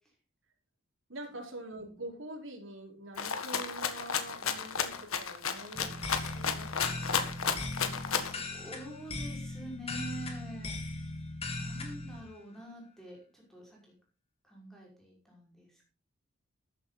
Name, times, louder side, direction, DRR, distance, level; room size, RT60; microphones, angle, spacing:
voice 1, 1.1-7.3, right 1 dB, 70° right, 0 dB, 4.6 m, -45 dB
Rattle (instrument), 3.2-8.4, left 6 dB, 85° left, 1.6 m, -33 dB
sound 1, 5.7-12.2, left 2 dB, 30° left, 2.5 m, -39 dB
voice 2, 8.0-11.0 11.5-13.9 14.4-15.9, right 1 dB, ahead, -2 dB, 5.5 m, -47 dB
13.5 x 10.0 x 4.1 m, 0.39 s
head